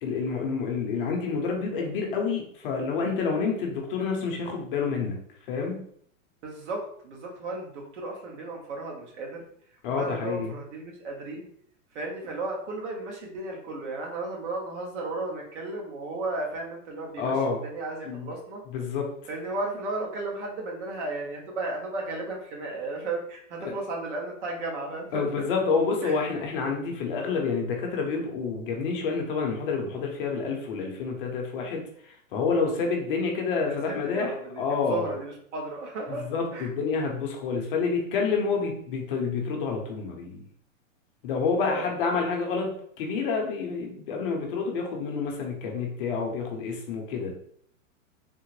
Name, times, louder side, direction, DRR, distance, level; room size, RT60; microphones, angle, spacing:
voice 1, 0.0-5.2 5.5-5.8 9.8-10.5 17.2-17.6 18.1-18.3 18.7-19.0 25.1-35.2 36.3-40.4 41.2-47.3, left 5 dB, 40° left, 1 dB, 0.7 m, -28 dB
voice 2, 6.4-9.5 9.9-11.5 11.9-18.6 19.3-25.5 26.0-26.2 33.7-36.7 41.7-41.9, right 2 dB, 60° right, 0 dB, 1.0 m, -34 dB
3.6 x 2.1 x 3.0 m, 0.64 s
hypercardioid pair, 150°, 40 cm